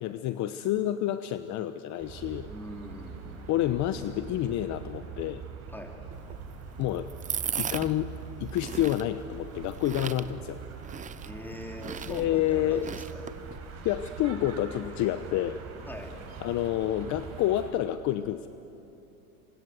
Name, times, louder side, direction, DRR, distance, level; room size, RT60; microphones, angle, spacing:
voice 1, 0.0-2.5 3.5-5.4 6.8-7.1 7.6-8.1 8.4-10.6 12.1-12.9 13.8-15.6 16.4-18.5, left 13 dB, 45° left, 11 dB, 0.9 m, -29 dB
sound 1, 2.0-17.7, right 5 dB, 40° right, 6.4 m, -43 dB
voice 2, 2.5-3.4 5.7-5.9 11.2-13.2 15.9-16.1, equal, 5° left, 2 dB, 3.9 m, -42 dB
sound 2, 6.1-13.6, right 8 dB, 20° right, 0.6 m, -38 dB
27.5 x 25.0 x 8.1 m, 2.9 s
supercardioid pair, 115°, 40 cm